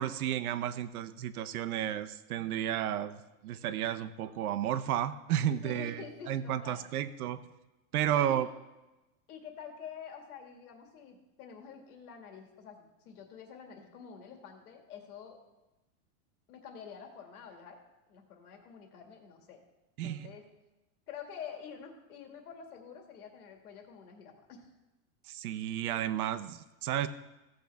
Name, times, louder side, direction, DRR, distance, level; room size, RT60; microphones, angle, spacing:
voice 1, 0.0-6.0 6.3-7.4 7.9-8.5 20.0-20.3 25.3-27.1, right 11 dB, 75° right, 11 dB, 0.9 m, -32 dB
voice 2, 5.6-6.9 8.1-8.5 9.3-15.4 16.5-17.8 18.1-19.6 20.0-20.5 21.1-24.7, left 7 dB, 80° left, 3 dB, 2.2 m, -48 dB
15.5 x 7.7 x 3.5 m, 1.0 s
supercardioid pair, 160°, 44 cm